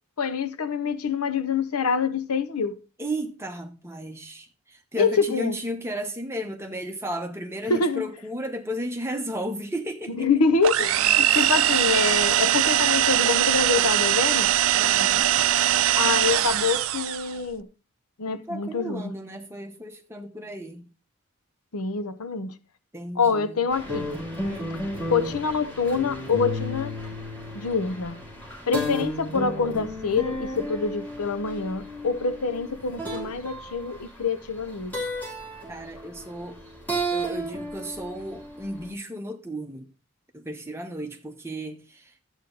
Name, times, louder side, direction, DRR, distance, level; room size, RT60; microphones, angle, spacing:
voice 1, 0.2-2.8 5.0-5.5 7.7-8.0 10.1-14.5 16.0-17.7 18.2-19.1 21.7-22.5 23.2-24.1 25.1-27.0 27.5-28.2 28.7-34.9, left 5 dB, 85° left, 0.8 m, -26 dB
voice 2, 3.0-10.3 11.3-11.5 14.7-15.3 18.5-20.9 22.9-23.6 24.4-24.8 35.7-36.6 37.1-39.9 40.3-42.1, equal, 10° right, 0.9 m, -34 dB
sound 1, 10.6-17.3, right 12 dB, 70° right, 0.4 m, -21 dB
sound 2, 23.7-38.9, equal, 10° left, 2.7 m, -34 dB
11.5 x 8.1 x 3.9 m
head